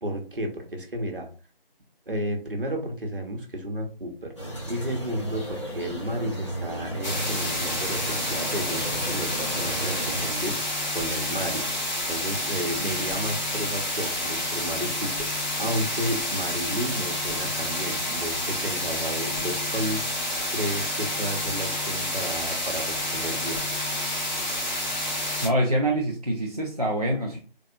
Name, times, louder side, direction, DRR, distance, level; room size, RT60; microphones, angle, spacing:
voice 1, 0.0-1.3 2.1-4.3 4.7-11.7 12.1-20.2 20.5-23.7, right 1 dB, 65° right, 2 dB, 1.1 m, -32 dB
sound 1, 4.4-10.3, right 1 dB, 30° left, 0.9 m, -34 dB
sound 2, 7.0-25.5, left 1 dB, 50° left, 1.2 m, -29 dB
voice 2, 25.4-27.4, right 1 dB, 40° right, 0 dB, 0.4 m, -25 dB
3.5 x 2.5 x 2.6 m, 0.37 s
figure-of-eight pair, 165°, 29 cm